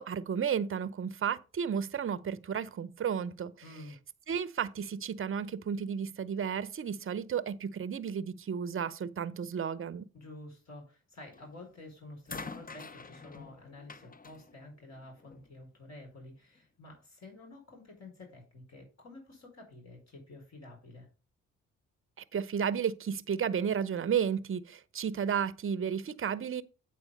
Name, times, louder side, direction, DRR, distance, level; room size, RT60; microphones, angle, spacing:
voice 1, 0.0-3.5 4.3-10.1 22.3-26.6, right 7 dB, 40° right, 0.7 m, -33 dB
voice 2, 3.6-4.0 10.1-21.1, left 2 dB, 50° left, 4.5 m, -50 dB
sound 1, 11.3-11.7 12.3-15.5 16.6-16.7, left 4 dB, 25° left, 0.9 m, -46 dB
8.2 x 4.6 x 5.3 m
supercardioid pair, 55°, 33 cm